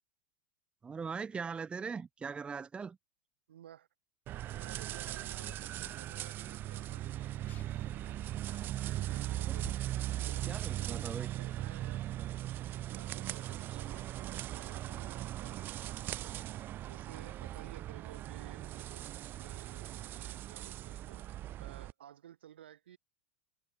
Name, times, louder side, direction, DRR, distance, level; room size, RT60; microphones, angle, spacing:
voice 1, 0.8-3.0 9.5-9.6 10.5-11.3 13.7-13.8, right 5 dB, 20° right, 1.0 m, -40 dB
voice 2, 3.5-3.9 4.4-7.2 8.8-9.8 10.1-12.2 12.9-16.4 16.9-19.1 19.4-23.0, right 11 dB, 75° right, 4.8 m, -55 dB
sound 1, 4.3-21.9, right 14 dB, 35° right, 0.5 m, -39 dB
sound 2, 5.4-10.6, left 10 dB, 30° left, 0.9 m, -58 dB
hypercardioid pair, 100°, 6 cm